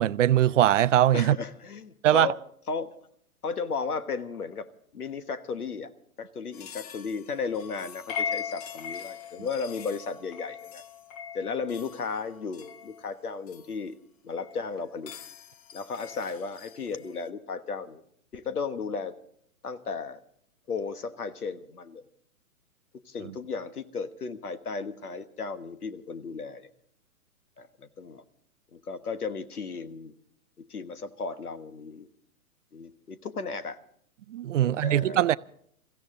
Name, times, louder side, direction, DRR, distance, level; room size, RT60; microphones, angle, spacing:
voice 1, 0.0-1.4 2.0-2.3 34.3-35.4, right 12 dB, 55° right, 0.5 m, -21 dB
voice 2, 1.1-2.4 2.6-2.9 3.4-4.7 4.9-5.9 6.2-10.8 11.3-14.0 14.2-15.1 15.7-18.0 18.3-19.1 19.6-20.2 20.7-22.0 23.0-26.7 27.6-28.2 28.7-30.2 30.6-32.1 32.7-33.8 34.6-35.3, left 5 dB, 80° left, 1.4 m, -35 dB
sound 1, 6.5-13.7 14.3-17.2, left 7 dB, 25° left, 0.6 m, -40 dB
22.5 x 15.5 x 3.7 m
figure-of-eight pair, 120°, 44 cm